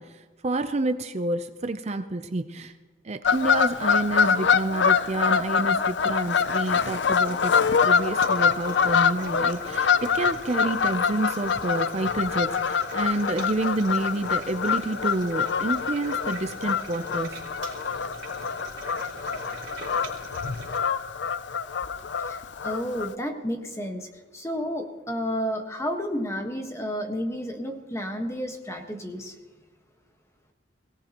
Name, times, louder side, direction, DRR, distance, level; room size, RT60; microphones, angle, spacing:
voice 1, 0.0-2.7 3.0-17.4, right 2 dB, 35° right, 9 dB, 0.5 m, -29 dB
Fowl / Bird vocalization bird call bird song, 3.2-23.1, left 6 dB, 65° left, 0.5 m, -25 dB
sound 1, 6.2-20.8, right 3 dB, 75° right, 3.7 m, -43 dB
voice 2, 22.2-29.3, equal, 15° left, 4 dB, 1.4 m, -31 dB
22.0 x 17.5 x 3.0 m, 1.4 s
head